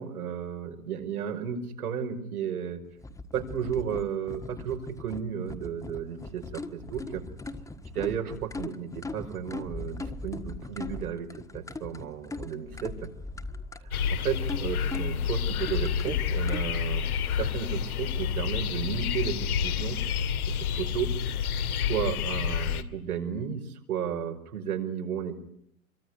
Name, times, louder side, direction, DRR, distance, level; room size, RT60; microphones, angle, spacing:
voice 1, 0.0-2.8 3.3-7.2 7.9-12.9 14.1-21.1 21.4-25.4, right 8 dB, 80° right, 4 dB, 5.8 m, -33 dB
sound 1, 3.0-16.6, left 2 dB, 5° left, 1.5 m, -40 dB
sound 2, 13.9-22.8, left 7 dB, 75° left, 2.5 m, -29 dB
25.5 x 24.0 x 9.8 m, 0.70 s
hypercardioid pair, 130°, 44 cm